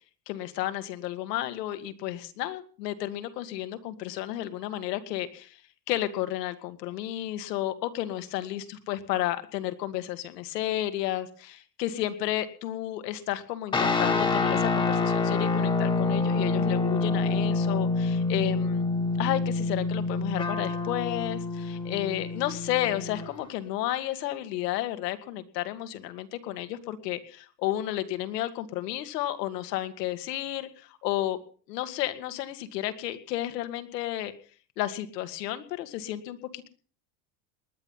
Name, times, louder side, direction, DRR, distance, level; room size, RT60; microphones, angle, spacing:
voice 1, 0.3-5.6 5.9-18.9 19.2-31.4 31.7-34.3 34.8-36.7, left 14 dB, 85° left, 10 dB, 2.2 m, -32 dB
sound 1, 13.7-23.4, left 3 dB, 10° left, 1.3 m, -27 dB
20.0 x 11.0 x 5.7 m, 0.43 s
supercardioid pair, 180°, 48 cm